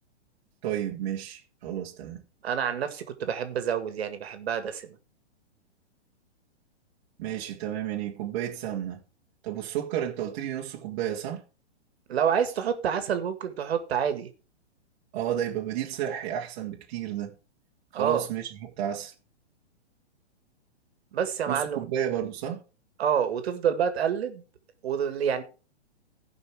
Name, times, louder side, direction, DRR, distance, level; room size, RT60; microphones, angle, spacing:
voice 1, 0.6-2.2 7.2-9.0 9.4-11.4 15.1-17.3 17.9-19.1 21.5-22.6, right 10 dB, 40° right, 1.7 m, -32 dB
voice 2, 2.4-5.0 12.1-14.3 17.9-18.3 21.1-21.8 23.0-24.4 24.8-25.4, right 8 dB, 65° right, 2.0 m, -28 dB
15.0 x 5.5 x 4.7 m
hypercardioid pair, 140°, 34 cm